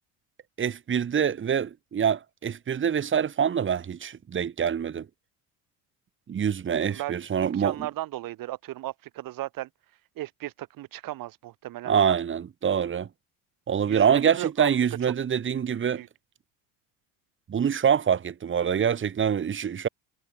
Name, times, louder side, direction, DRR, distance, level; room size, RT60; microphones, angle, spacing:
voice 1, 0.6-5.1 6.3-7.9 11.9-13.1 13.7-16.0 17.5-19.9, right 8 dB, 30° right, 3.1 m, -25 dB
voice 2, 6.9-9.7 10.2-12.2 13.9-14.7 15.9-16.1, right 15 dB, 60° right, 5.9 m, -35 dB
cardioid pair, 135°, 39 cm